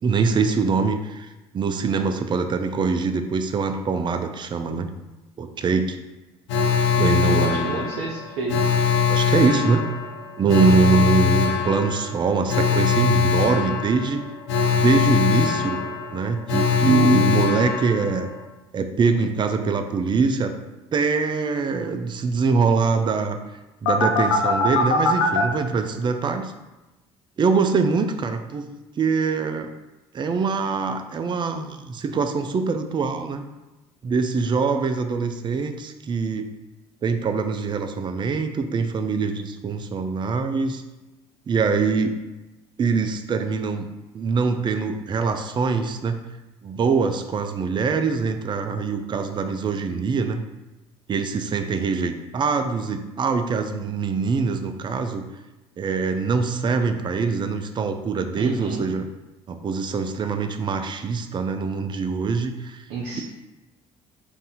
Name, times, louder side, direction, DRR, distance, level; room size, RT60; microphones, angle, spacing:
voice 1, 0.0-1.3 1.5-4.9 5.4-6.0 7.0-7.8 9.1-9.8 10.4-14.2 14.7-15.8 16.1-18.3 18.7-20.5 20.9-23.4 23.8-26.5 27.4-29.7 30.1-33.4 34.0-36.5 37.0-40.8 41.5-42.2 42.8-43.9 44.1-46.2 46.6-50.4 51.1-55.2 55.8-59.0 59.5-62.9, right 4 dB, 35° right, 7 dB, 0.4 m, -23 dB
Alarm, 6.5-18.4 23.9-25.4, left 7 dB, 80° left, 0.6 m, -22 dB
voice 2, 7.2-8.6 58.3-58.9 62.9-63.2, right 3 dB, 75° right, -2 dB, 0.6 m, -30 dB
4.1 x 2.6 x 3.7 m, 1.1 s
hypercardioid pair, 65°, 15 cm